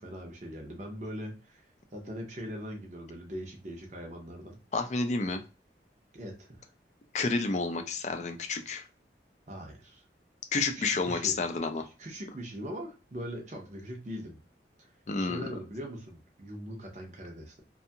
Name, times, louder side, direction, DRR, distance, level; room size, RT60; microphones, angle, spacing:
voice 1, 0.0-4.6 6.1-6.7 9.5-10.0 10.7-11.4 11.8-14.4 14.8-14.9 15.2-17.6, equal, 40° right, 1 dB, 0.7 m, -41 dB
voice 2, 4.7-5.4 7.1-8.8 10.5-11.8 15.1-15.5, left 3 dB, 40° left, 6 dB, 0.4 m, -30 dB
2.7 x 2.3 x 2.7 m, 0.33 s
head